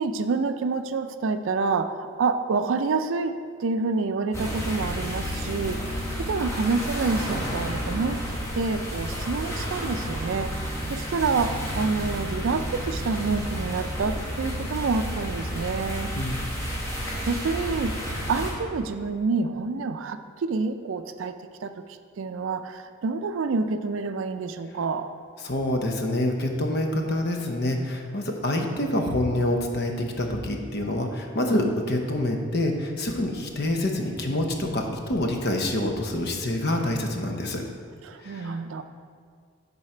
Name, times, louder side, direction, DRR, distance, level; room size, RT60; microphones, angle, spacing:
voice 1, 0.0-8.2 8.5-16.1 17.2-21.3 21.6-21.7 22.2-25.1 38.0-38.8, right 4 dB, 70° right, 10 dB, 0.4 m, -28 dB
sound 1, 4.3-18.5, equal, 15° left, 1.4 m, -31 dB
voice 2, 25.4-37.6 38.2-38.5, left 1 dB, 50° left, 3 dB, 0.8 m, -26 dB
10.5 x 4.1 x 4.4 m, 2.1 s
head